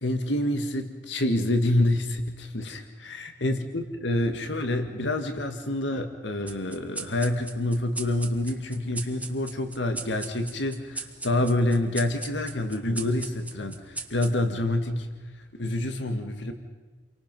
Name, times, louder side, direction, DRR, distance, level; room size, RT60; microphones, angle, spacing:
voice 1, 0.0-15.1 15.6-16.5, left 1 dB, 85° left, 6 dB, 1.9 m, -27 dB
sound 1, 6.5-15.4, right 3 dB, 10° right, 1.2 m, -40 dB
29.5 x 23.5 x 5.4 m, 1.3 s
head